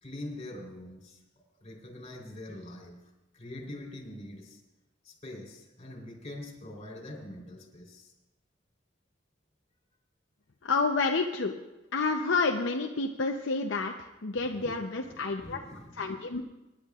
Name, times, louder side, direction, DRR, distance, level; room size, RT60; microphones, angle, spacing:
voice 1, 0.0-1.2 1.6-4.6 5.0-8.1 14.6-14.8 15.0-16.1, left 1 dB, 35° left, -1 dB, 3.8 m, -44 dB
voice 2, 10.6-11.6 11.9-13.9 14.2-15.6 16.0-16.4, left 4 dB, 75° left, 2 dB, 0.7 m, -29 dB
25.5 x 11.0 x 2.4 m, 0.98 s
head